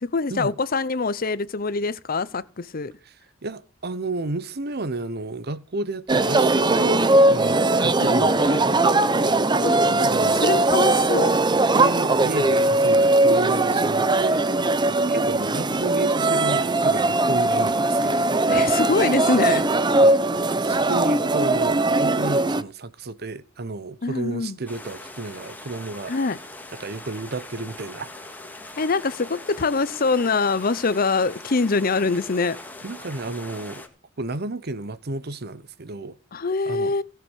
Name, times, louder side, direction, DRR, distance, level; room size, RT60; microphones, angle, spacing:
voice 1, 0.0-2.9 8.0-9.8 10.4-11.3 18.5-19.6 24.0-24.6 26.1-26.4 28.8-32.6 36.3-37.0, left 4 dB, 45° left, 0.7 m, -24 dB
voice 2, 3.4-8.7 9.8-10.5 11.7-14.4 14.8-18.3 20.0-20.2 20.6-26.1 26.7-28.1 32.8-33.8 34.2-36.2 36.7-37.0, right 2 dB, 55° right, 0.9 m, -32 dB
sound 1, 6.1-22.6, right 2 dB, 20° right, 0.7 m, -20 dB
sound 2, 24.7-33.9, left 2 dB, 10° left, 1.9 m, -41 dB
17.0 x 6.9 x 6.3 m
head